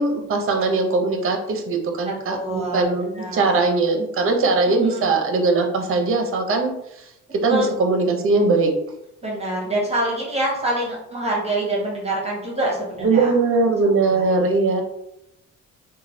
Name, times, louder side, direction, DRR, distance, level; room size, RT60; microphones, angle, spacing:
voice 1, 0.0-6.7 7.4-8.7 13.0-14.8, right 3 dB, 45° right, 4 dB, 0.6 m, -20 dB
voice 2, 2.0-2.9 3.1-3.6 4.7-5.1 7.5-7.7 9.2-13.3 14.1-14.5, right 1 dB, 20° right, -3 dB, 0.9 m, -26 dB
3.0 x 2.2 x 2.6 m, 0.82 s
cardioid pair, 90°, 30 cm